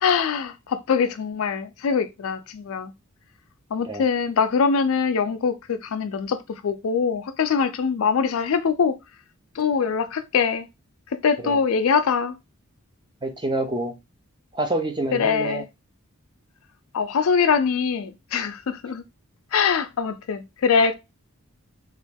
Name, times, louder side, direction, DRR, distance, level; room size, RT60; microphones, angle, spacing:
voice 1, 0.0-2.9 3.7-8.9 9.6-10.7 11.2-12.4 15.1-15.7 16.9-19.0 19.5-21.0, left 6 dB, 65° left, 0.4 m, -23 dB
voice 2, 13.2-13.9 14.5-15.6, right 2 dB, 20° right, 0.5 m, -27 dB
3.0 x 2.4 x 3.3 m
head